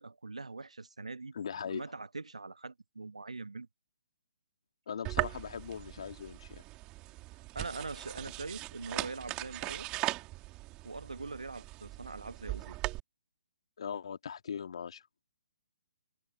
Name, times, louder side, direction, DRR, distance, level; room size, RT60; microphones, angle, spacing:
voice 1, 0.0-1.3 1.7-3.7 7.6-9.9 10.8-12.8, right 3 dB, 80° right, 1.8 m, -42 dB
voice 2, 1.3-1.8 4.9-6.6 13.8-15.0, left 7 dB, 60° left, 2.9 m, -40 dB
sound 1, 5.0-13.0, right 20 dB, 25° right, 2.8 m, -39 dB
figure-of-eight pair, 135°, 3 cm